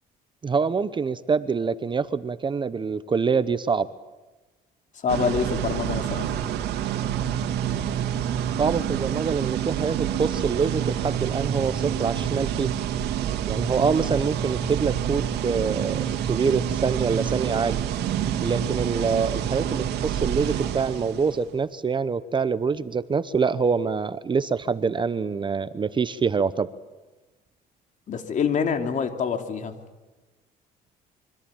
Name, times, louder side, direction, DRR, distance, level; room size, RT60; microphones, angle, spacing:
voice 1, 0.4-3.9 8.6-12.7 13.5-17.8 18.4-26.7, right 5 dB, 30° right, 15 dB, 0.9 m, -25 dB
voice 2, 4.9-6.3 28.1-29.7, left 6 dB, 50° left, 6 dB, 3.2 m, -26 dB
sound 1, 5.1-21.4, right 9 dB, 75° right, 2.7 m, -27 dB
26.0 x 24.5 x 9.0 m, 1.2 s
cardioid pair, 110°, 17 cm